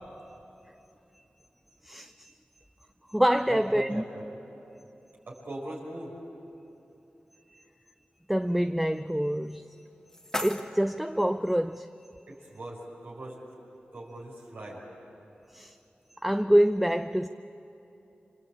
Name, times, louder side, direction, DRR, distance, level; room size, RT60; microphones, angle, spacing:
voice 1, 1.8-2.3 3.1-4.0 7.5-7.6 8.3-9.6 10.4-11.9 15.5-15.7 16.2-17.3, equal, 5° right, 0.5 m, -26 dB
voice 2, 3.5-4.3 5.3-6.2 12.3-13.4 13.9-14.8, right 1 dB, 75° right, 6.0 m, -39 dB
sound 1, 9.6-11.6, left 1 dB, 15° left, 1.7 m, -38 dB
27.0 x 25.5 x 8.6 m
wide cardioid pair, 75°, 4 cm